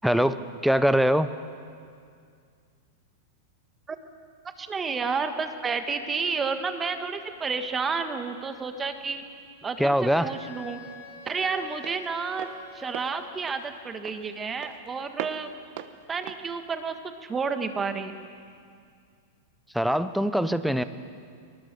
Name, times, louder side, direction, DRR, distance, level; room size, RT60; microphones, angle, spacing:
voice 1, 0.0-1.3 9.8-10.3 19.7-20.8, equal, ahead, 12 dB, 0.8 m, -23 dB
voice 2, 4.6-9.2 9.6-10.8 11.2-12.5 12.7-15.5 16.1-17.0 17.2-18.1, right 5 dB, 15° right, 7 dB, 1.6 m, -30 dB
Walk footsteps, 9.0-17.7, right 13 dB, 55° right, 1.1 m, -43 dB
Wind instrument woodwind instrument, 10.0-13.6, left 5 dB, 90° left, 6.8 m, -47 dB
22.5 x 20.5 x 6.8 m, 2.2 s
hypercardioid pair, 135°, 0 cm